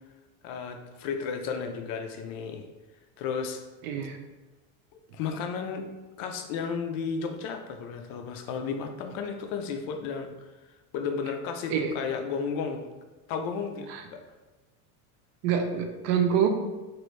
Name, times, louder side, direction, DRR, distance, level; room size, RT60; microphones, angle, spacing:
voice 1, 0.4-2.7 3.2-3.6 5.1-5.9 6.2-10.5 10.9-12.9 13.3-14.2, left 6 dB, 50° left, 5 dB, 0.5 m, -33 dB
voice 2, 3.8-4.2 11.7-11.9 13.9-14.0 15.4-16.5, right 8 dB, 85° right, 5 dB, 0.7 m, -26 dB
3.0 x 2.6 x 3.1 m, 1.2 s
supercardioid pair, 125°, 45 cm